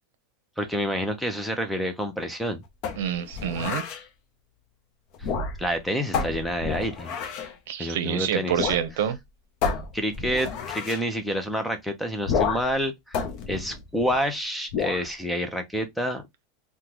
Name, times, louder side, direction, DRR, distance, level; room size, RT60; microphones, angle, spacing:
voice 1, 0.6-2.6 5.6-7.1 7.8-8.7 9.9-13.2 13.5-16.2, equal, ahead, 0.5 m, -28 dB
sound 1, 2.8-4.0 5.1-5.8 6.1-7.5 8.6-8.9 9.1-9.2 9.6-11.1 12.2-12.8 13.1-14.3 14.7-15.1, left 6 dB, 45° left, 0.7 m, -30 dB
voice 2, 3.0-3.8 7.7-9.2, right 9 dB, 75° right, 0.7 m, -27 dB
3.7 x 2.2 x 2.9 m
supercardioid pair, 160°, 0 cm